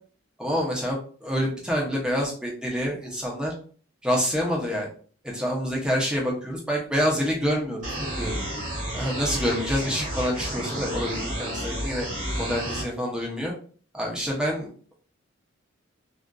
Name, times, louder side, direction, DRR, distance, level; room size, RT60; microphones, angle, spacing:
voice 1, 0.4-3.5 4.0-4.9 5.2-7.8 8.2-8.4 8.9-12.1 12.4-13.5 13.9-14.7, equal, 5° right, -2 dB, 0.6 m, -27 dB
sound 1, 7.8-12.8, right 1 dB, 40° right, 1.0 m, -31 dB
2.5 x 2.4 x 2.2 m, 0.44 s
head